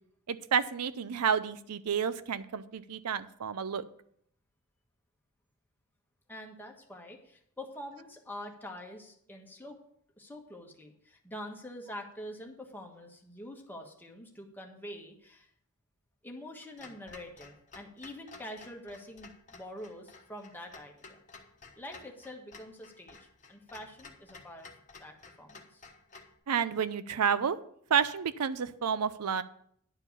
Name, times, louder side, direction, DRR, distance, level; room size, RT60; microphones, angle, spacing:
voice 1, 0.3-3.8 26.5-27.6 27.9-29.4, right 7 dB, 90° right, 14 dB, 0.5 m, -30 dB
voice 2, 6.3-9.8 10.2-15.5 16.2-21.2 21.8-24.7 25.0-25.8, left 1 dB, 10° left, 1 dB, 1.4 m, -46 dB
Clock, 16.8-26.3, left 4 dB, 35° left, 1.2 m, -53 dB
11.0 x 4.6 x 7.1 m, 0.68 s
head